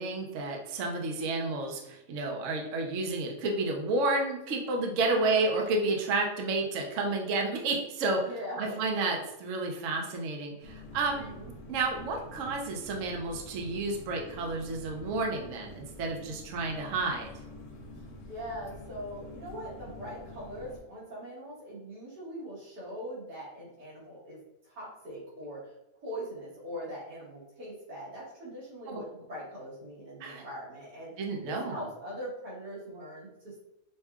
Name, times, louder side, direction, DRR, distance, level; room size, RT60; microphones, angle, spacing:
voice 1, 0.0-8.2 8.6-11.3 11.7-17.3 28.9-29.0 30.2-30.4 31.2-31.9, right 3 dB, 60° right, 1 dB, 0.9 m, -31 dB
voice 2, 5.1-5.5 8.2-8.9 11.1-11.5 18.3-24.4 24.6-25.7 26.0-31.1 31.5-33.6, equal, 85° right, -8 dB, 2.3 m, -41 dB
sound 1, 10.6-20.8, left 1 dB, 70° left, 1.2 m, -47 dB
5.4 x 2.3 x 2.3 m, 0.88 s
omnidirectional pair, 1.7 m